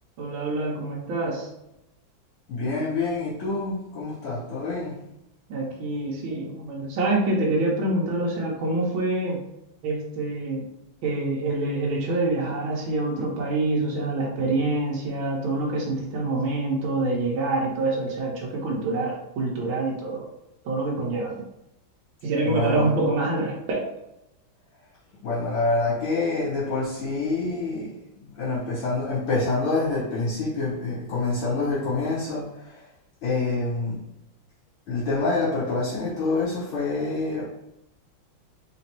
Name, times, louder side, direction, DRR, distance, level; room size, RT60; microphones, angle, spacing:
voice 1, 0.2-1.5 5.5-9.4 9.8-10.6 11.0-20.3 20.6-21.4 22.2-23.9, right 2 dB, 80° right, -3 dB, 1.5 m, -26 dB
voice 2, 2.5-5.0 22.4-23.0 25.2-32.9 33.2-34.0 34.9-37.4, left 3 dB, 80° left, -11 dB, 2.1 m, -27 dB
4.5 x 3.0 x 2.9 m, 0.86 s
omnidirectional pair, 2.2 m